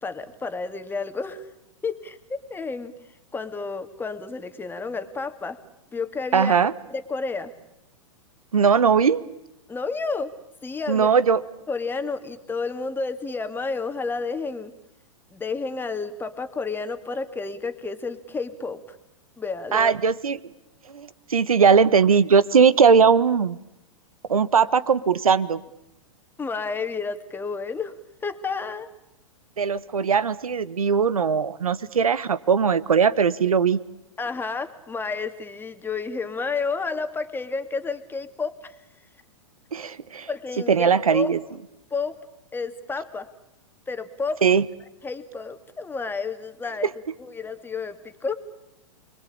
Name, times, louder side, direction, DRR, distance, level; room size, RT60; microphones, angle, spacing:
voice 1, 0.0-1.5 1.8-2.9 3.3-5.6 5.9-6.5 6.9-7.5 9.7-10.3 10.6-11.2 11.7-14.7 15.3-19.0 19.4-19.9 26.4-27.9 28.2-28.9 34.2-38.8 40.3-41.4 41.9-42.2 42.5-43.3 43.9-44.4 45.0-46.9 47.2-48.3, left 4 dB, 10° left, 8 dB, 2.4 m, -31 dB
voice 2, 6.3-6.7 8.5-9.2 10.9-11.4 19.7-20.4 20.9-23.6 24.3-25.6 29.6-33.8 39.7-40.3 40.7-41.4 44.4-44.6 46.8-46.9, right 6 dB, 90° right, 17 dB, 1.5 m, -19 dB
29.5 x 22.5 x 8.7 m, 0.87 s
hypercardioid pair, 115°, 18 cm